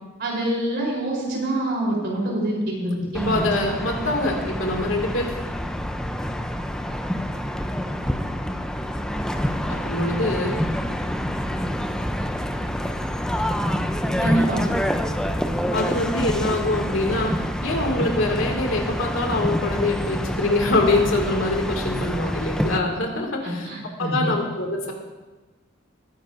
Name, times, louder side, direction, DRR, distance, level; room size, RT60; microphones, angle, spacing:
voice 1, 0.2-3.5 14.2-14.6 23.4-24.3, right 1 dB, 55° right, -3 dB, 3.9 m, -25 dB
sound 1, 3.1-22.8, equal, 5° left, 0.6 m, -27 dB
voice 2, 3.2-5.4 9.7-10.6 15.7-17.3 17.6-23.7 24.0-24.9, left 2 dB, 80° left, 1 dB, 2.3 m, -24 dB
20.0 x 10.0 x 2.6 m, 1.2 s
head